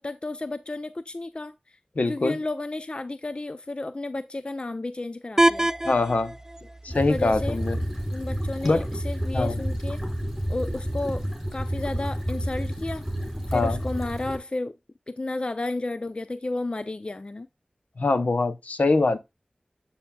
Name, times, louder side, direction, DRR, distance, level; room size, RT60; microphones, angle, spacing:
voice 1, 0.0-1.5 2.1-5.7 7.1-7.6 8.1-10.0 10.5-11.2 11.5-13.1 13.5-14.7 15.1-17.5, left 2 dB, 45° left, 0.5 m, -32 dB
voice 2, 2.0-2.4 5.8-6.3 6.8-7.8 8.6-8.9 9.3-9.6 13.5-13.8 18.0-19.2, left 3 dB, 75° left, 0.8 m, -23 dB
sound 1, 5.4-11.4, right 1 dB, 20° right, 0.3 m, -30 dB
sound 2, 6.9-14.4, equal, 5° left, 3.2 m, -30 dB
7.3 x 6.9 x 2.2 m
wide cardioid pair, 45°, 3 cm